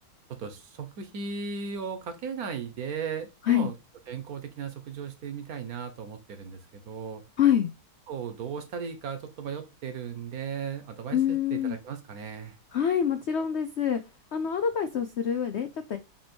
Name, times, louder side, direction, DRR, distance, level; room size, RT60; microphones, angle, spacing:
voice 1, 0.3-3.7 4.1-6.6 6.9-7.2 8.1-12.6, right 6 dB, 60° right, 7 dB, 1.3 m, -36 dB
voice 2, 7.4-7.7 11.1-11.8 12.7-14.0 14.3-16.0, left 9 dB, 70° left, 8 dB, 0.6 m, -26 dB
7.6 x 3.0 x 4.4 m, 0.28 s
omnidirectional pair, 1.9 m